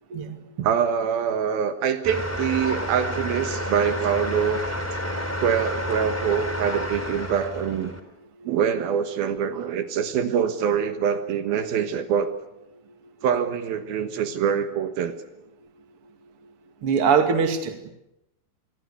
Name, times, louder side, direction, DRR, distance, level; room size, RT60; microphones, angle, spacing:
voice 1, 0.6-4.6 5.4-7.9 8.5-12.3 13.2-15.2, right 8 dB, 75° right, 9 dB, 3.2 m, -24 dB
sound 1, 2.0-8.0, left 1 dB, 5° left, 2.8 m, -30 dB
voice 2, 16.8-17.9, right 6 dB, 40° right, 6 dB, 2.8 m, -22 dB
27.0 x 22.5 x 8.3 m, 0.88 s
omnidirectional pair, 4.4 m